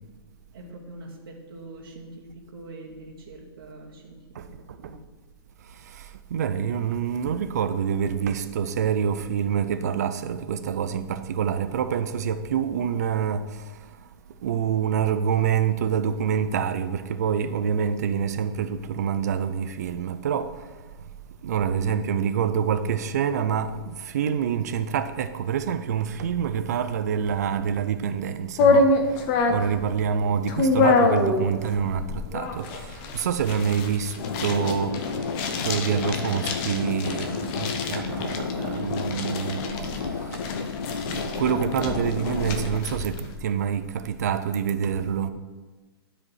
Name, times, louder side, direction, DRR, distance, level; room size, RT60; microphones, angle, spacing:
voice 1, 0.5-4.2 4.8-4.9, right 2 dB, 60° right, 2.3 m, -43 dB
voice 2, 6.3-13.4 14.4-20.6 21.4-28.9 29.5-34.1 34.4-35.0 35.6-40.4 41.1-45.3, right 7 dB, 40° right, 0.5 m, -26 dB
sound 1, 28.6-43.3, left 3 dB, 15° left, 0.5 m, -26 dB
sound 2, 34.2-42.8, left 5 dB, 55° left, 0.7 m, -31 dB
12.5 x 5.0 x 4.7 m
hypercardioid pair, 180°, 13 cm